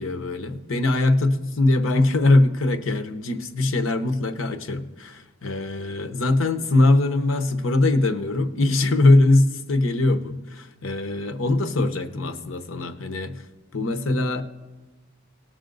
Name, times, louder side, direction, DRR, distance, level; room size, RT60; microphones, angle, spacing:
voice 1, 0.0-13.4 13.7-14.4, left 2 dB, 90° left, 0.9 m, -21 dB
19.0 x 6.4 x 3.9 m
head